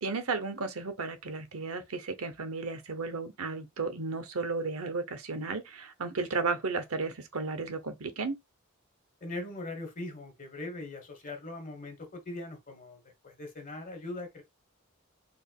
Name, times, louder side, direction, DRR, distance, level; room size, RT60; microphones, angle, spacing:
voice 1, 0.0-8.4, right 4 dB, 85° right, 0.8 m, -34 dB
voice 2, 9.2-14.4, left 2 dB, 40° left, 1.3 m, -41 dB
4.3 x 3.6 x 2.3 m
head